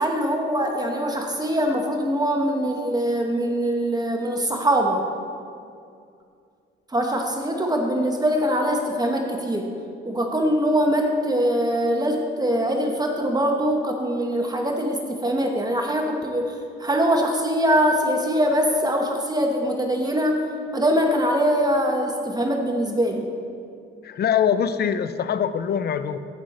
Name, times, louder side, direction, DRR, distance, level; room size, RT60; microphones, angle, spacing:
voice 1, 0.0-5.0 6.9-9.7 10.0-16.5 16.8-20.5 20.7-23.3, equal, 20° right, 2 dB, 1.1 m, -23 dB
voice 2, 24.0-26.2, left 8 dB, 55° left, 12 dB, 0.6 m, -23 dB
15.5 x 6.3 x 4.2 m, 2.4 s
cardioid pair, 90°, 20 cm